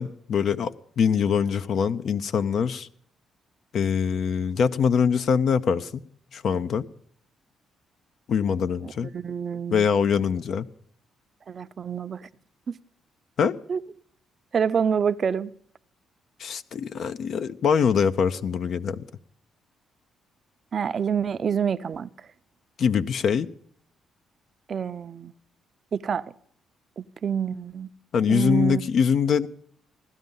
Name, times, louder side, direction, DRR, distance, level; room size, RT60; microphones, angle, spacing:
voice 1, 0.0-2.9 3.7-6.0 6.3-6.8 8.3-9.1 9.7-10.7 13.4-13.6 16.4-19.0 22.8-23.5 28.1-29.5, left 7 dB, 60° left, 0.6 m, -23 dB
voice 2, 8.8-9.9 11.5-12.3 12.7-12.8 13.7-13.8 14.5-15.5 20.7-22.1 24.7-25.3 25.9-26.3 27.0-27.9 28.3-28.9, right 7 dB, 45° right, 0.5 m, -27 dB
16.0 x 12.0 x 5.4 m
cardioid pair, 90°, 0 cm